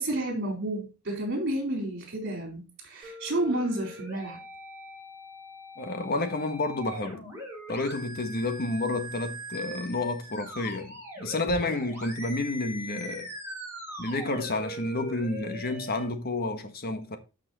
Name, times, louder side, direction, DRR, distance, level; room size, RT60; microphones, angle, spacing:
voice 1, 0.0-4.4, right 1 dB, 50° right, 4.1 m, -30 dB
sound 1, 3.0-16.0, equal, 10° right, 6.1 m, -41 dB
voice 2, 5.8-7.2 7.7-13.3 14.0-17.2, left 2 dB, 45° left, 1.5 m, -30 dB
12.0 x 6.1 x 4.2 m
head